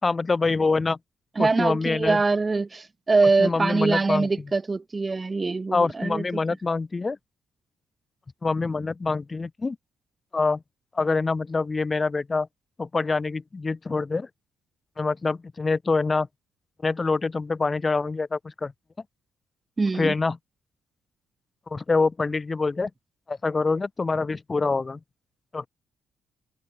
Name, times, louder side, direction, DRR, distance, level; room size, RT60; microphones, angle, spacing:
voice 1, 0.0-1.0 1.4-2.2 3.4-4.3 5.7-7.2 8.4-9.8 10.3-10.6 10.9-12.5 12.8-14.3 15.0-16.3 16.8-18.7 19.9-20.4 21.7-22.9 23.3-25.0 25.5-25.7, left 3 dB, 25° left, 2.7 m, -25 dB
voice 2, 1.3-6.2 19.8-20.1, right 3 dB, 25° right, 1.6 m, -23 dB
cardioid pair, 90°, 0 cm